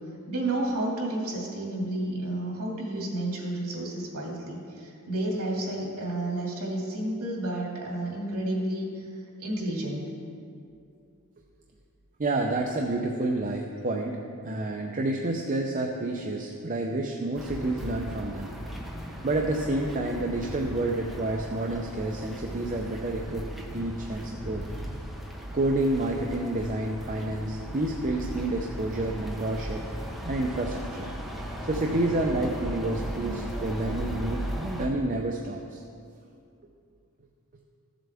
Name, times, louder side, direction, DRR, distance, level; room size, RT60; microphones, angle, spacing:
voice 1, 0.3-9.0 9.4-10.1, right 1 dB, 80° right, -2 dB, 2.4 m, -31 dB
voice 2, 12.2-14.2 14.4-18.5 19.2-23.4 23.7-24.8 25.5-29.8 30.2-31.1 31.6-35.8, right 2 dB, 35° right, 1 dB, 0.6 m, -29 dB
sound 1, 17.4-34.9, equal, ahead, 1.0 m, -37 dB
14.5 x 7.6 x 3.5 m, 2.4 s
head